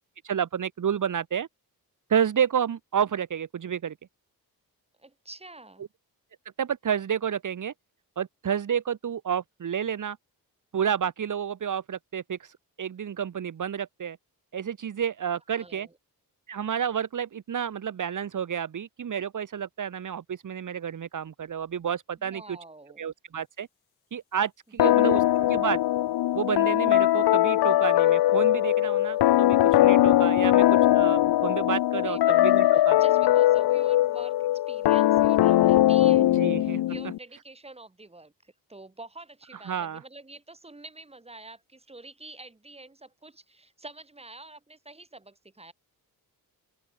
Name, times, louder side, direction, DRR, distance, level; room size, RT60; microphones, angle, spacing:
voice 1, 0.2-1.5 2.1-3.9 6.6-7.7 8.2-10.2 10.7-14.2 14.5-15.9 16.5-22.4 23.0-23.7 24.1-25.8 26.3-33.0 36.4-36.8 39.7-40.0, right 8 dB, 55° right, 2.0 m, -30 dB
voice 2, 5.0-5.8 15.5-15.9 22.2-23.1 24.7-25.2 32.0-45.7, right 2 dB, 15° right, 6.4 m, -47 dB
sound 1, 24.8-37.2, left 14 dB, 80° left, 0.7 m, -21 dB
open air
wide cardioid pair, 135°, 38 cm